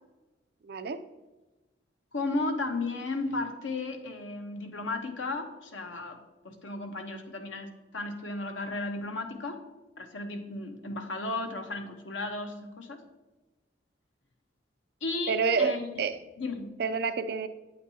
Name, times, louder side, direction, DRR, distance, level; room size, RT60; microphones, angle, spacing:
voice 1, 0.6-1.0 15.3-16.1 16.8-17.5, right 5 dB, 55° right, 10 dB, 0.4 m, -28 dB
voice 2, 2.1-6.2 6.4-9.6 10.0-13.0 15.0-15.9 16.4-16.7, left 2 dB, 90° left, 5 dB, 1.0 m, -34 dB
8.6 x 8.1 x 2.8 m, 1.1 s
head